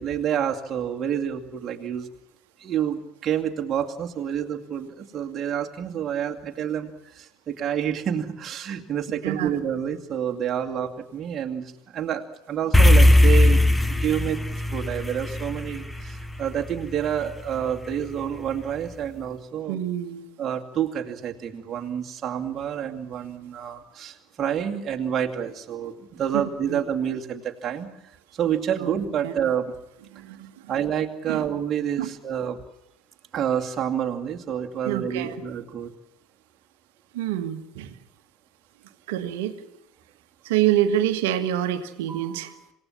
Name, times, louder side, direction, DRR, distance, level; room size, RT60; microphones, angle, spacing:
voice 1, 0.0-2.1 2.6-14.4 14.7-19.8 20.4-27.9 28.3-29.7 30.7-32.6 33.3-35.9 42.1-42.5, right 9 dB, 35° right, 2 dB, 2.5 m, -28 dB
sound 1, 12.7-17.2, left 1 dB, 5° left, 1.2 m, -18 dB
voice 2, 19.7-20.3 26.3-26.4 26.7-26.8 28.8-28.9 29.2-29.3 30.1-30.7 31.3-31.5 32.0-32.1 34.8-35.4 37.1-38.0 39.1-39.7 40.4-42.5, right 11 dB, 60° right, 9 dB, 1.7 m, -26 dB
27.5 x 17.5 x 7.4 m, 0.84 s
figure-of-eight pair, 70°, 0 cm